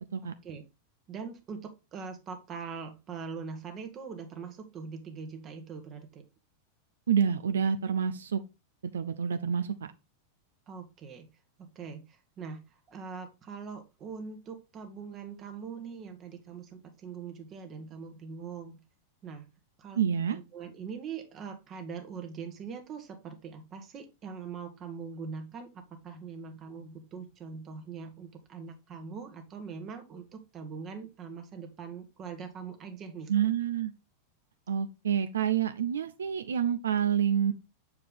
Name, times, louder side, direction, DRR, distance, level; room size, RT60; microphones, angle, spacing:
voice 1, 0.2-0.6 1.1-6.2 10.7-11.3 11.6-18.8 19.2-19.4 19.8-20.0 20.3-25.7 26.0-33.3, right 5 dB, 30° right, 1.2 m, -42 dB
voice 2, 7.1-8.4 8.9-9.7 19.9-20.4 33.3-33.9 34.7-37.5, right 8 dB, 65° right, 0.5 m, -28 dB
6.7 x 4.7 x 3.6 m
figure-of-eight pair, 90°, 0 cm